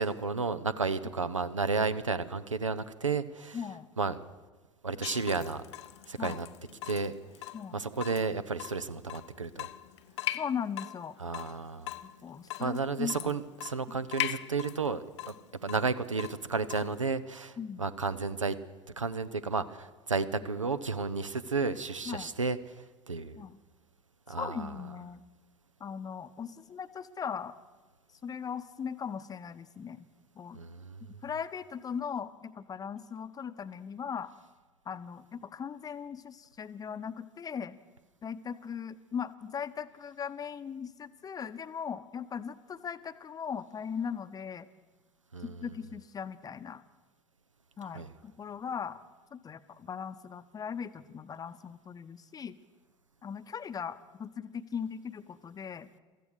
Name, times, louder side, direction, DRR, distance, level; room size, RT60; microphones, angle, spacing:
voice 1, 0.0-3.6 4.0-4.2 4.8-5.6 6.0-6.5 6.8-7.1 7.7-9.7 11.2-11.9 12.6-15.3 15.6-18.6 19.0-23.4 24.3-24.7 30.5-31.2 45.3-45.7 47.9-48.1, right 4 dB, 85° right, 14 dB, 0.6 m, -32 dB
voice 2, 3.5-3.9 6.2-6.4 7.5-7.8 10.3-11.2 12.2-13.1 13.9-14.0 17.6-17.9 22.1-22.3 23.4-23.6 24.4-25.2 25.8-27.6 28.2-30.1 30.4-30.6 31.2-34.3 34.9-37.8 38.2-44.7 45.4-46.8 47.8-49.0 49.3-52.6 53.2-55.9, left 7 dB, 25° left, 12 dB, 0.7 m, -39 dB
Water tap faucet / Drip, 5.0-17.0, left 14 dB, 65° left, 0.5 m, -41 dB
16.0 x 14.0 x 6.4 m, 1.3 s
figure-of-eight pair, 70°, 16 cm